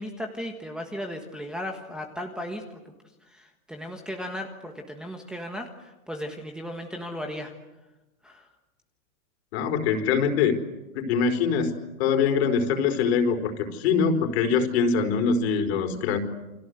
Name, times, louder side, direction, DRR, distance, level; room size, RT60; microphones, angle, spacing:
voice 1, 0.0-2.9 3.2-7.5 8.2-8.5, equal, ahead, 0 dB, 1.4 m, -36 dB
voice 2, 9.5-10.6 10.9-11.7 12.0-16.2, left 6 dB, 45° left, 6 dB, 4.5 m, -23 dB
29.5 x 25.0 x 8.0 m, 1.0 s
hypercardioid pair, 160°, 44 cm